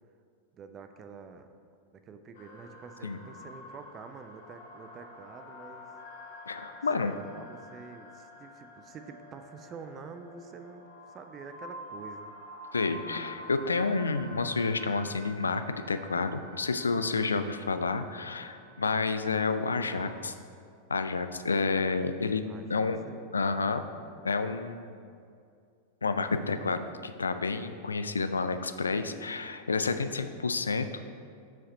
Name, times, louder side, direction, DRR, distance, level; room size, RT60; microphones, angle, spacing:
voice 1, 0.5-1.5 1.9-5.9 7.0-12.3 22.5-23.3, right 5 dB, 30° right, 8 dB, 0.5 m, -47 dB
sound 1, 2.3-20.2, left 1 dB, 55° left, 0.9 m, -48 dB
voice 2, 6.5-7.1 12.7-20.3 20.9-22.4 22.7-23.0 23.3-23.8 24.2-25.1 26.0-31.1, left 4 dB, 75° left, 10 dB, 0.3 m, -30 dB
5.9 x 4.8 x 5.4 m, 2.3 s
figure-of-eight pair, 90°, 0 cm